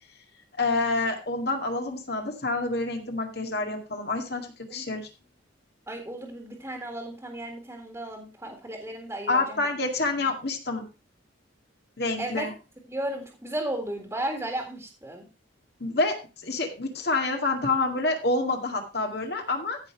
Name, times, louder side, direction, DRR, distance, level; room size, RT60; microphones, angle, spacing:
voice 1, 0.6-5.1 9.3-10.9 12.0-12.5 15.8-19.8, left 3 dB, 55° left, 3 dB, 2.1 m, -28 dB
voice 2, 5.9-9.7 12.2-12.5 12.9-15.3, right 1 dB, 15° right, 2 dB, 1.9 m, -34 dB
15.0 x 5.8 x 4.6 m, 0.30 s
head